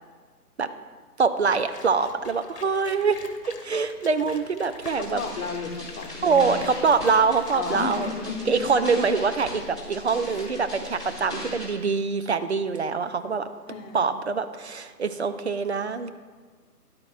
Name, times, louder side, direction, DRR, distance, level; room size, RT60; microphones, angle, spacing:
voice 1, 1.2-3.2 3.5-5.2 6.2-8.1 8.5-13.5 13.9-16.1, right 5 dB, 45° right, 10 dB, 0.5 m, -24 dB
sound 1, 1.6-8.1, left 4 dB, 70° left, 1.3 m, -45 dB
sound 2, 4.9-11.7, left 2 dB, 5° right, 0.9 m, -39 dB
voice 2, 5.0-6.6 7.5-8.7 10.2-10.4 13.7-14.0, left 4 dB, 55° left, 3 dB, 1.2 m, -33 dB
13.0 x 10.5 x 2.4 m, 1.5 s
figure-of-eight pair, 150°, 48 cm